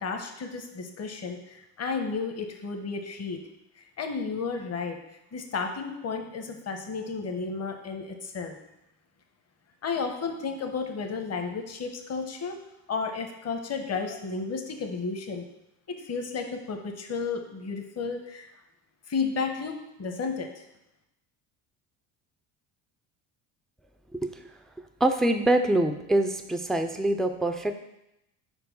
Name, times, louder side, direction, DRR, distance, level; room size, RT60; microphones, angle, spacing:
voice 1, 0.0-3.4 4.0-5.0 5.3-8.5 9.8-12.6 12.9-15.4 15.9-18.5 19.1-20.6, left 4 dB, 35° left, 5 dB, 1.0 m, -32 dB
voice 2, 25.0-27.7, right 1 dB, ahead, 6 dB, 0.3 m, -24 dB
4.6 x 4.3 x 5.3 m, 0.86 s
supercardioid pair, 85°, 43 cm